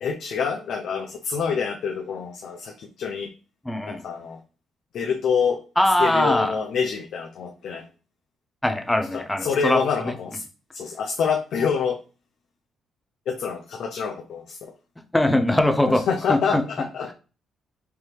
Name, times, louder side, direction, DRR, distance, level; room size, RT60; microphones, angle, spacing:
voice 1, 0.0-3.3 3.8-4.4 4.9-5.6 6.0-7.8 9.4-10.4 10.7-12.0 13.3-14.7 16.1-17.1, left 6 dB, 70° left, 2 dB, 0.5 m, -26 dB
voice 2, 3.6-4.0 5.8-6.6 8.6-10.1 15.1-16.0 16.3-16.6, left 1 dB, 10° left, 7 dB, 0.6 m, -21 dB
4.5 x 2.9 x 3.3 m, 0.35 s
cardioid pair, 90°, 0 cm